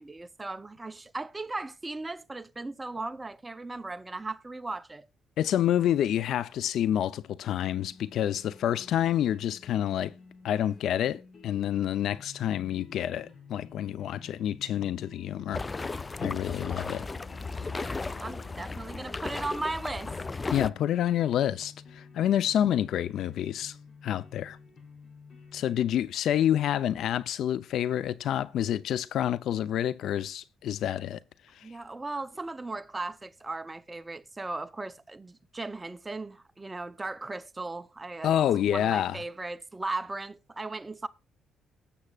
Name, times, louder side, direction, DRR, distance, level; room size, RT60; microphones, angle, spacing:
voice 1, 0.0-5.1 17.5-20.1 31.6-38.3 38.7-41.1, right 2 dB, 20° right, 0.7 m, -37 dB
voice 2, 5.4-10.1 10.4-15.6 16.2-17.1 20.5-23.7 24.0-24.6 25.5-31.2 31.6-31.7 38.2-39.2, left 11 dB, 75° left, 0.6 m, -28 dB
sound 1, 7.6-25.9, left 5 dB, 50° left, 5.2 m, -51 dB
sound 2, 15.5-20.7, left 3 dB, 25° left, 0.5 m, -35 dB
18.5 x 7.3 x 2.4 m
cardioid pair, 90°, 0 cm